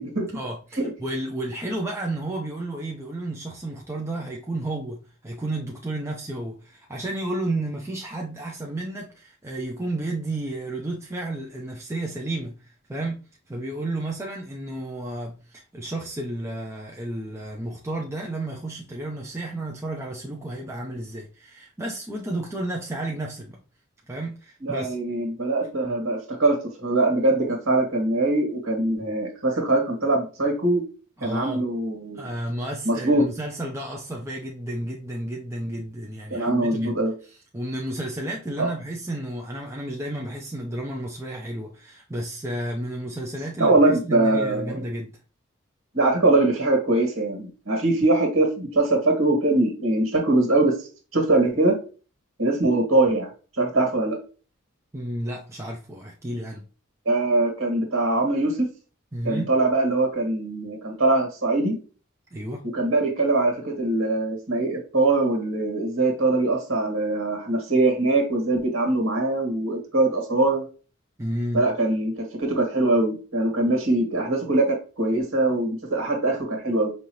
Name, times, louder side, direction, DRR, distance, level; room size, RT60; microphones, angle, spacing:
voice 1, 0.3-12.6 12.9-23.6 24.1-25.0 31.2-31.6 32.1-37.0 37.2-45.1 54.9-56.6 59.1-59.5 62.3-62.7 71.2-71.6, right 1 dB, 15° right, 0.6 m, -32 dB
voice 2, 24.6-30.8 31.2-32.3 32.8-33.2 36.3-37.1 38.6-38.7 43.6-44.8 45.9-50.7 51.1-51.8 52.4-53.3 53.5-54.2 57.1-58.7 59.2-61.8 62.7-70.6 71.5-76.9, right 2 dB, 80° right, 1.8 m, -22 dB
5.4 x 2.8 x 3.1 m
head